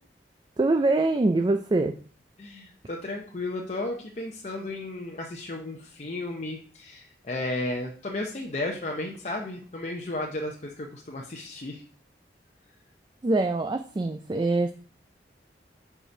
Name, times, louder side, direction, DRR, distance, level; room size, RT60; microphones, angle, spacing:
voice 1, 0.6-1.9 13.2-14.7, right 2 dB, 25° right, 7 dB, 0.3 m, -24 dB
voice 2, 2.4-11.8, left 2 dB, 40° left, 0 dB, 0.7 m, -34 dB
5.2 x 4.9 x 5.9 m, 0.43 s
head